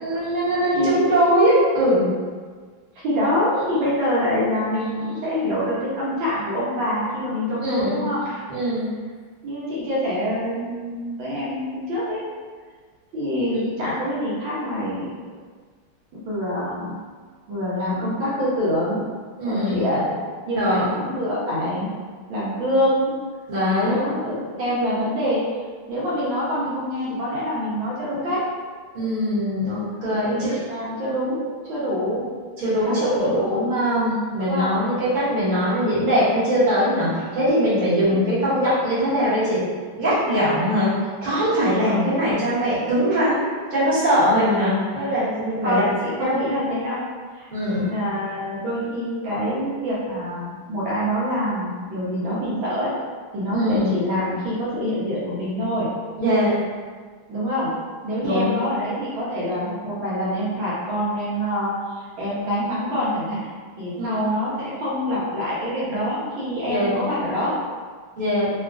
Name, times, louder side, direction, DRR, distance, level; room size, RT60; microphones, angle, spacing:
voice 1, 0.0-2.1 7.6-8.0 8.5-8.9 19.4-19.8 20.6-20.9 23.5-24.1 28.9-30.6 32.6-39.6 40.0-40.9 41.2-45.9 46.2-46.4 47.5-47.9 53.5-53.9 56.2-56.5 58.2-58.5 63.9-64.3 66.7-66.9 68.2-68.5, equal, 30° right, -12 dB, 1.1 m, -21 dB
voice 2, 2.9-8.4 9.4-12.2 13.1-15.1 16.1-16.9 17.5-19.0 19.4-20.1 20.5-21.9 22.3-23.1 23.8-25.4 25.9-28.4 30.2-32.2 32.6-33.7 34.4-34.7 38.0-38.1 41.8-42.1 45.6-47.0 47.3-47.5 47.8-52.9 53.3-55.9 57.3-57.7 58.0-63.5 63.8-67.5, equal, 75° right, -8 dB, 1.5 m, -25 dB
3.7 x 2.3 x 2.4 m, 1.6 s
omnidirectional pair, 2.3 m